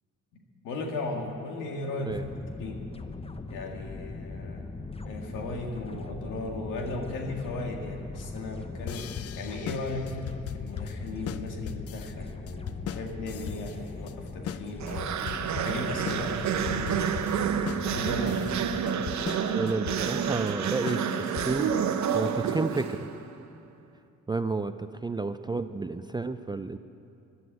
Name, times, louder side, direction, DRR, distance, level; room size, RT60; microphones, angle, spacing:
voice 1, 0.6-2.3 2.6-2.8 3.5-4.6 5.0-9.1 9.4-17.1 17.9-18.5, left 2 dB, 90° left, 2 dB, 1.9 m, -36 dB
sound 1, 2.1-18.9, left 3 dB, 20° left, 0.8 m, -40 dB
sound 2, 8.9-21.8, left 10 dB, 50° left, 0.5 m, -39 dB
sound 3, 14.8-23.3, right 7 dB, 65° right, 1.0 m, -29 dB
voice 2, 19.5-21.7 22.1-23.1 24.3-26.8, right 3 dB, 15° right, 10 dB, 0.4 m, -31 dB
14.0 x 11.5 x 8.1 m, 2.6 s
cardioid pair, 90°, 30 cm